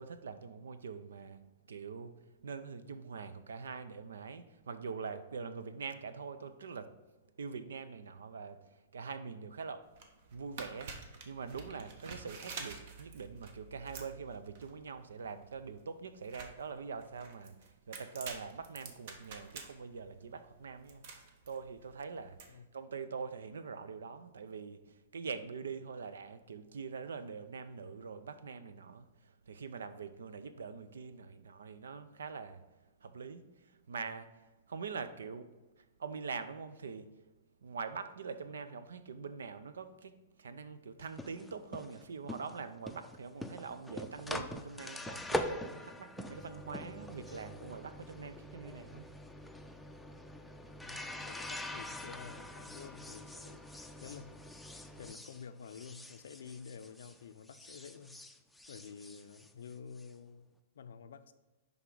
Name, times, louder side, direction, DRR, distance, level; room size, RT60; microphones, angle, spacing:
voice 1, 0.0-6.9 7.4-10.0 10.3-32.6 33.0-37.1 37.6-49.1, right 5 dB, 85° right, 0.5 m, -44 dB
sound 1, 9.8-22.5, right 4 dB, 60° right, 1.0 m, -49 dB
sound 2, 41.0-57.2 57.5-60.1, left 1 dB, 5° left, 0.4 m, -44 dB
voice 2, 50.8-53.6 54.0-54.3 55.0-58.2 58.7-61.3, left 6 dB, 75° left, 0.5 m, -50 dB
10.5 x 3.6 x 3.8 m
hypercardioid pair, 130°, 0 cm